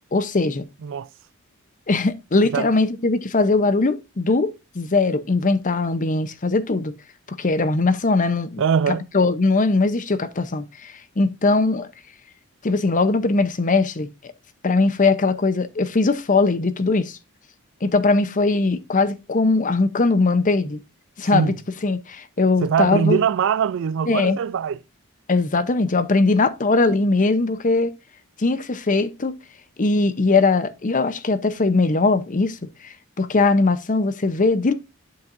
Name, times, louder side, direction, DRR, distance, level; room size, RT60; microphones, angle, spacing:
voice 1, 0.1-0.6 1.9-6.9 7.4-8.6 9.1-11.9 12.6-14.1 14.6-17.2 17.8-20.8 21.2-21.5 21.8-23.2 24.1-24.4 25.3-27.9 28.4-29.3 29.8-32.6 32.8-34.7, left 3 dB, 35° left, 0.7 m, -20 dB
voice 2, 8.6-9.0 21.3-21.6 22.6-24.8, right 7 dB, 60° right, 0.3 m, -22 dB
10.5 x 5.7 x 2.5 m
head